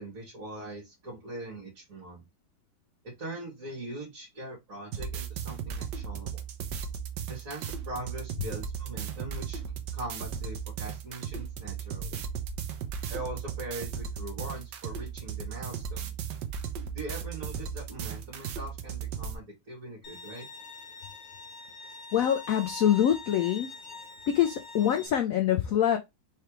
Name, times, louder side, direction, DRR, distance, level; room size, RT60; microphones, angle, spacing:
voice 1, 0.0-2.2 3.0-6.4 7.3-9.6 9.9-12.2 13.1-16.3 16.9-20.5, right 2 dB, 45° right, 2.4 m, -41 dB
sound 1, 4.9-19.3, right 7 dB, 70° right, 1.3 m, -36 dB
Bowed string instrument, 20.0-25.1, left 4 dB, 40° left, 0.7 m, -44 dB
voice 2, 22.1-23.7 24.3-26.0, left 10 dB, 80° left, 0.7 m, -25 dB
4.6 x 3.3 x 3.0 m
omnidirectional pair, 2.0 m